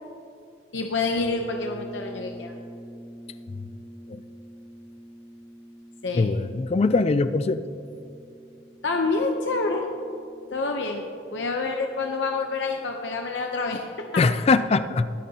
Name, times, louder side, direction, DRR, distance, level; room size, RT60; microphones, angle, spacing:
voice 1, 0.7-2.5 6.0-6.3 8.8-9.9 10.5-11.0 11.3-13.8, left 3 dB, 85° left, 2 dB, 0.8 m, -27 dB
sound 1, 1.2-10.8, right 1 dB, 65° left, 1.8 m, -45 dB
voice 2, 6.1-7.6 14.2-15.1, left 3 dB, 35° left, 13 dB, 0.3 m, -22 dB
22.0 x 9.3 x 2.9 m, 2.6 s
head